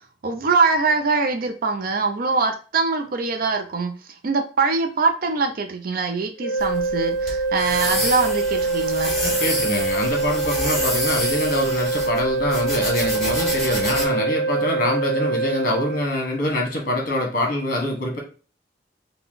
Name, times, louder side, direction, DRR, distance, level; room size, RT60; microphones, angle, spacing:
voice 1, 0.2-3.9 4.2-9.1, right 4 dB, 55° right, 5 dB, 0.5 m, -23 dB
sound 1, 6.4-16.1, right 3 dB, 80° left, 0.6 m, -24 dB
sound 2, 6.6-14.1, equal, ahead, 1.8 m, -29 dB
voice 2, 9.2-18.2, left 1 dB, 50° left, 1 dB, 1.3 m, -25 dB
3.8 x 2.3 x 3.9 m, 0.36 s
head